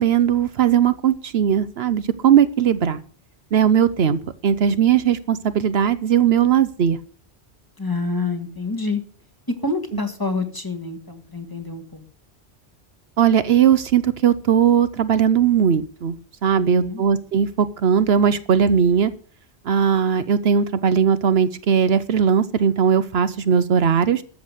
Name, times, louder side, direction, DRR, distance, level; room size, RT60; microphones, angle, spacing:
voice 1, 0.0-3.0 3.5-4.2 4.4-7.0 13.2-16.1 16.4-19.1 19.7-24.2, right 8 dB, 70° right, 13 dB, 1.0 m, -18 dB
voice 2, 7.8-9.0 9.6-12.1 16.6-17.0, left 3 dB, 20° left, 5 dB, 2.0 m, -27 dB
13.5 x 7.0 x 8.0 m, 0.42 s
omnidirectional pair, 1.1 m